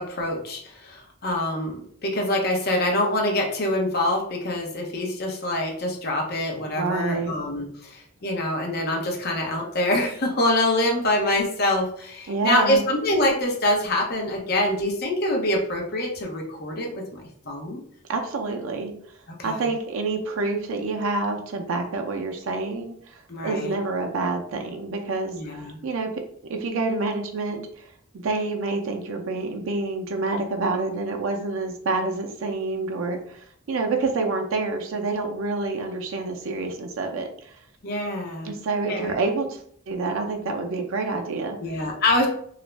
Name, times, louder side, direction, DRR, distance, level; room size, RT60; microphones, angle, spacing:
voice 1, 0.0-17.8 19.4-19.6 23.3-23.8 25.3-25.8 37.8-38.5 38.9-39.2 41.6-42.3, left 1 dB, 50° left, 0 dB, 0.6 m, -25 dB
voice 2, 6.8-7.3 12.3-12.8 18.1-18.9 19.4-26.1 26.5-27.9 28.2-37.6 38.4-39.6 39.9-41.6, right 3 dB, 75° right, 3 dB, 0.4 m, -27 dB
2.4 x 2.0 x 3.1 m, 0.62 s
head